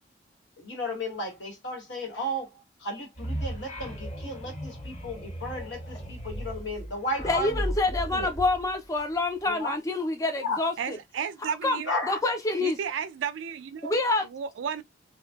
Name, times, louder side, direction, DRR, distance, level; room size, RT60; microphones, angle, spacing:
voice 1, 0.6-8.3 9.5-9.7 10.4-10.6 11.9-12.2, left 1 dB, 75° left, 1.1 m, -34 dB
sound 1, 3.1-9.4, equal, 40° left, 0.8 m, -36 dB
voice 2, 7.2-11.0 11.4-12.8 13.8-14.3, left 2 dB, 15° left, 0.3 m, -27 dB
voice 3, 10.8-11.9 12.6-13.9 14.2-14.8, right 7 dB, 85° right, 0.3 m, -33 dB
2.5 x 2.2 x 2.2 m
head